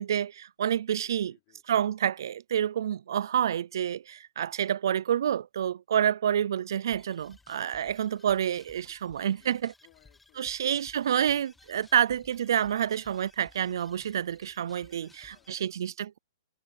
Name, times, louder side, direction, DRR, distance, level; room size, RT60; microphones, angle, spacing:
voice 1, 0.0-1.4 1.7-9.7 10.4-15.1 15.5-16.2, right 9 dB, 50° right, 0.4 m, -28 dB
voice 2, 1.0-1.8 7.8-8.1 9.3-10.8 11.7-12.1 15.0-15.8, left 25 dB, 25° left, 5.1 m, -66 dB
sound 1, 6.9-15.6, left 3 dB, 5° left, 1.0 m, -59 dB
hypercardioid pair, 175°, 3 cm